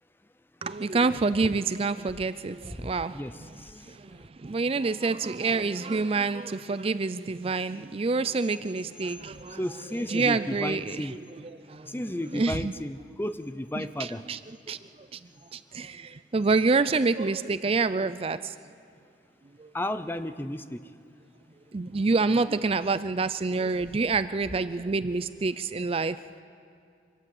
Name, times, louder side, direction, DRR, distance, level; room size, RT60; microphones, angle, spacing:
voice 1, 0.6-3.5 3.8-9.6 9.9-11.1 11.5-12.0 12.3-12.7 13.8-14.4 14.7-15.2 15.5-18.5 19.6-19.7 21.7-26.2, right 3 dB, 35° right, 14 dB, 0.4 m, -27 dB
voice 2, 2.8-4.3 9.5-11.1 11.8-14.2 19.7-20.9, left 1 dB, 10° left, 11 dB, 0.7 m, -34 dB
24.5 x 18.5 x 7.8 m, 2.5 s
head